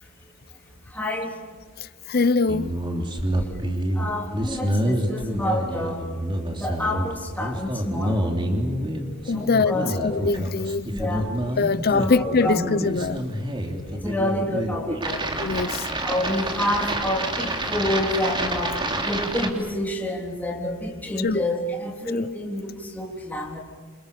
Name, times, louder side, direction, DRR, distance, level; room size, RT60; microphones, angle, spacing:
voice 1, 0.9-1.3 4.0-6.1 6.5-8.2 9.3-10.2 10.9-11.3 11.9-12.6 14.0-15.7 16.0-23.6, left 1 dB, 10° left, 3.4 m, -28 dB
voice 2, 2.1-2.7 9.3-10.9 11.6-13.2 15.4-15.9 21.2-21.4 22.1-22.3, left 4 dB, 45° left, 0.7 m, -23 dB
sound 1, 2.5-19.5, right 1 dB, 25° right, 3.3 m, -28 dB
29.0 x 27.5 x 6.7 m
head